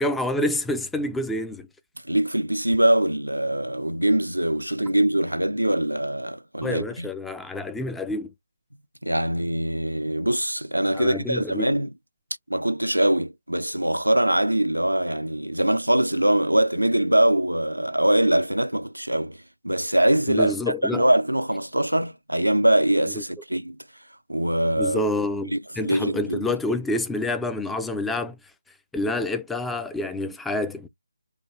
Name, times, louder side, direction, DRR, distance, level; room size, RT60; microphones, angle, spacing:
voice 1, 0.0-1.7 6.6-8.3 10.9-11.8 20.3-21.0 24.8-28.4 28.9-30.9, left 2 dB, 5° left, 0.3 m, -28 dB
voice 2, 2.0-7.1 9.0-11.9 12.5-19.4 19.6-20.5 20.9-23.8 24.3-25.0 25.5-26.6, right 1 dB, 85° right, 0.4 m, -23 dB
4.8 x 2.3 x 2.6 m
figure-of-eight pair, 150°, 0 cm